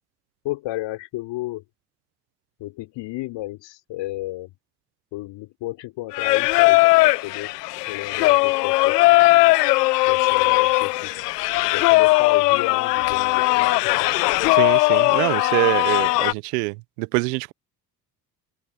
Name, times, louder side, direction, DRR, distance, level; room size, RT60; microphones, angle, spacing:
voice 1, 0.4-1.6 2.6-4.5 5.1-7.5 7.9-8.9 10.0-11.1 11.7-13.9, left 18 dB, 70° left, 5.2 m, -33 dB
Singing, 6.1-16.3, left 21 dB, 85° left, 0.8 m, -18 dB
voice 2, 14.5-17.5, right 27 dB, 80° right, 0.8 m, -25 dB
hypercardioid pair, 60°, 46 cm